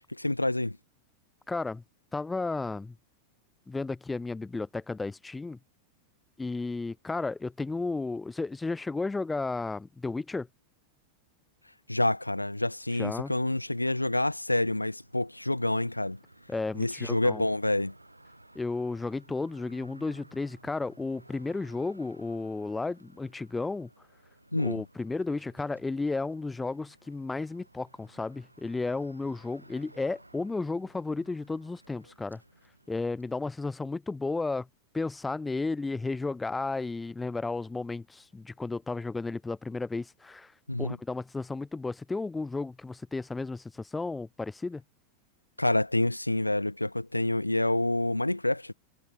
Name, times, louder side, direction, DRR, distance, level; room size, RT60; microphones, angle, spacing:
voice 1, 0.1-0.8 11.9-16.2 16.8-17.9 24.5-24.8 40.7-41.0 45.6-48.7, left 1 dB, 85° left, 0.4 m, -28 dB
voice 2, 1.5-1.8 2.1-2.9 3.7-5.6 6.4-10.5 13.0-13.3 16.5-17.4 18.6-23.9 24.6-32.4 32.9-34.7 34.9-40.5 40.8-44.8, left 3 dB, 10° left, 0.3 m, -33 dB
sound 1, 15.0-33.4, right 1 dB, 85° right, 7.4 m, -57 dB
figure-of-eight pair, 90°, 0 cm